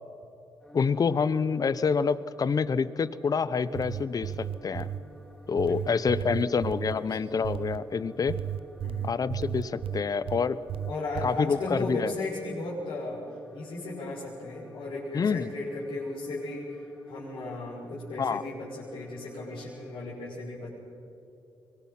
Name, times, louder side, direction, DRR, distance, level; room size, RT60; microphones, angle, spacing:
sound 1, 0.6-20.0, equal, 10° left, 4.5 m, -51 dB
voice 1, 0.7-4.9 5.5-8.4 9.0-10.6 11.2-12.1 15.1-15.5 18.2-18.4, left 5 dB, 45° left, 16 dB, 0.8 m, -27 dB
sound 2, 3.6-5.0 5.6-7.0 7.4-7.8 8.3-10.4 10.7-11.3, right 9 dB, 85° right, 0.7 m, -34 dB
voice 2, 5.7-6.4 7.0-7.1 8.8-9.2 10.9-13.2 13.5-16.8 17.1-20.7, left 2 dB, 80° left, -8 dB, 5.8 m, -36 dB
25.5 x 21.5 x 5.8 m, 2.9 s
cardioid pair, 85°, 9 cm